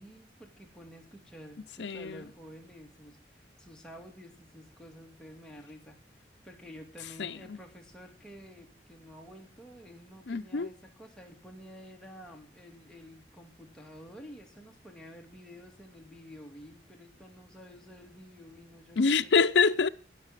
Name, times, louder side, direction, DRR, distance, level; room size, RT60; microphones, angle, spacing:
voice 1, 0.0-19.3, equal, 5° left, 2.3 m, -50 dB
voice 2, 1.8-2.2 7.2-7.6 10.3-10.7 19.0-19.9, left 5 dB, 75° left, 0.6 m, -26 dB
17.0 x 6.7 x 7.5 m
head